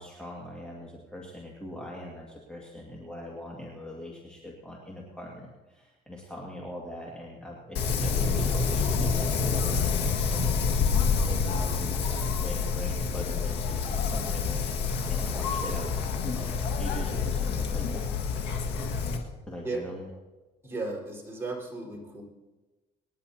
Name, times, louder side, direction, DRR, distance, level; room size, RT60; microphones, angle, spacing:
voice 1, 0.0-18.1 19.5-20.1, left 1 dB, 5° left, -3 dB, 2.2 m, -42 dB
Wind, 7.8-19.2, left 5 dB, 85° left, 1.9 m, -27 dB
voice 2, 20.6-22.2, right 3 dB, 15° right, -3 dB, 4.6 m, -35 dB
26.5 x 10.5 x 2.8 m, 1.2 s
cardioid pair, 110°, 17 cm